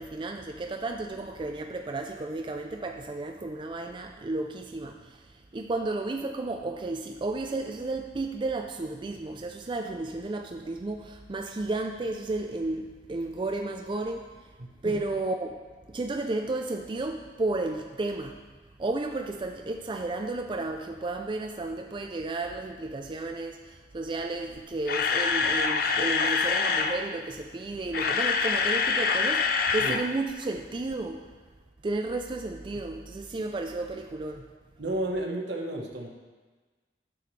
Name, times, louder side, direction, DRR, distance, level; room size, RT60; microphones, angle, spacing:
voice 1, 0.0-5.0 5.5-14.2 14.8-15.6 15.9-18.4 18.8-23.6 23.9-31.2 31.8-34.4, right 2 dB, 30° right, 3 dB, 0.4 m, -32 dB
voice 2, 14.6-15.0 29.8-29.9 34.8-36.1, right 1 dB, 80° right, 0 dB, 1.2 m, -32 dB
Camera, 24.6-27.0 27.7-30.0 30.3-30.4 30.9-31.0, left 5 dB, 55° left, 0.5 m, -25 dB
10.0 x 6.9 x 3.2 m, 1.4 s
head